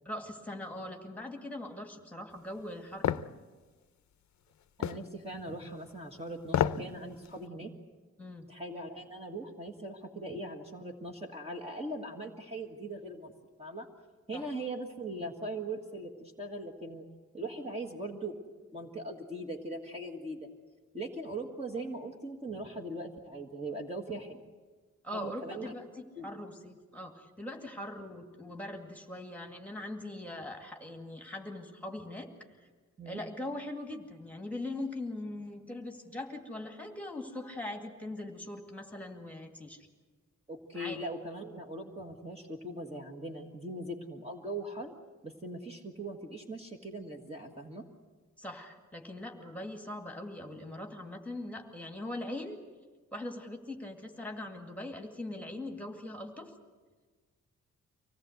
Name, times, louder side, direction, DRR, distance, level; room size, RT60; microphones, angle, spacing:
voice 1, 0.1-3.1 8.2-8.5 14.3-14.5 25.0-32.3 33.1-39.9 40.7-41.0 48.4-52.6 53.1-56.5, left 1 dB, 5° left, 3 dB, 2.2 m, -41 dB
sound 1, 3.0-3.3 4.8-5.0 6.4-6.9 7.3-7.4, left 10 dB, 70° left, 0.7 m, -28 dB
voice 2, 4.8-7.7 8.5-13.3 13.6-13.9 14.3-17.0 17.3-18.4 18.7-20.5 20.9-24.4 25.1-25.7 26.2-26.4 33.0-33.2 40.5-44.9 45.2-47.8, right 1 dB, 20° right, 2 dB, 1.7 m, -40 dB
25.0 x 18.0 x 8.0 m, 1.4 s
wide cardioid pair, 155°, 30 cm